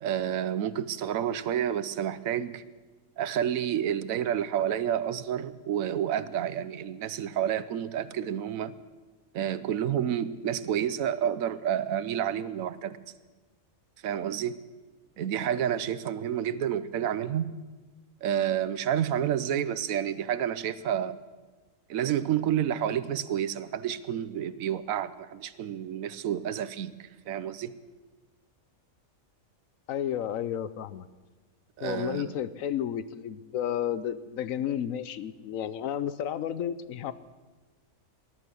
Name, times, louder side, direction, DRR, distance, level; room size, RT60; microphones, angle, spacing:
voice 1, 0.0-2.6 3.2-8.7 9.3-13.0 14.0-14.6 15.2-17.5 18.2-21.2 21.9-27.7 31.8-32.3, right 10 dB, 90° right, 15 dB, 1.1 m, -29 dB
voice 2, 29.9-31.1 31.8-37.1, left 10 dB, 80° left, 15 dB, 1.1 m, -32 dB
20.5 x 11.0 x 6.3 m, 1.3 s
omnidirectional pair, 1.4 m